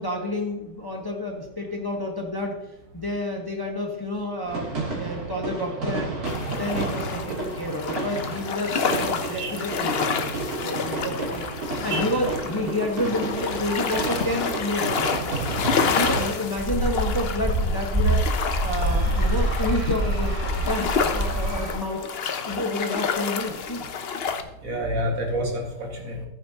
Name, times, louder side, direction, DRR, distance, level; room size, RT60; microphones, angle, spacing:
voice 1, 0.0-2.5 2.9-6.1 6.5-11.4 11.8-15.1 15.8-18.2 18.6-22.0 22.4-23.8, left 1 dB, 15° left, 1 dB, 1.1 m, -29 dB
sound 1, 4.5-16.2, right 3 dB, 80° right, 3.4 m, -31 dB
sound 2, 6.3-24.4, left 6 dB, 50° left, 0.8 m, -29 dB
voice 2, 13.7-14.1 24.6-26.2, right 1 dB, 65° right, 1 dB, 2.2 m, -29 dB
sound 3, 16.6-21.7, right 1 dB, 30° right, 3.6 m, -25 dB
14.0 x 9.6 x 2.8 m, 0.90 s
omnidirectional pair, 1.6 m